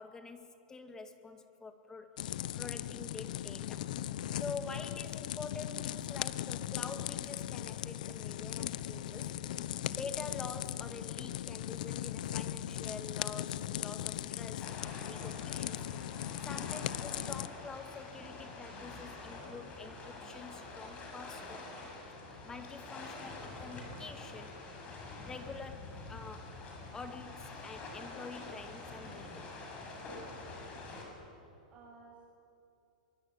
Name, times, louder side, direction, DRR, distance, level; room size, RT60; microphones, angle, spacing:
voice 1, 0.0-2.1 2.5-3.9 4.3-15.9 16.4-21.9 22.5-26.6 26.9-29.6, left 4 dB, 15° left, 8 dB, 2.0 m, -47 dB
sound 1, 2.2-17.5, left 12 dB, 70° left, 1.0 m, -38 dB
sound 2, 14.6-31.1, left 2 dB, 30° left, 6.9 m, -46 dB
voice 2, 30.7-31.1 31.7-32.3, right 4 dB, 30° right, -4 dB, 7.4 m, -57 dB
24.0 x 22.5 x 10.0 m, 2.6 s
hypercardioid pair, 135°, 5 cm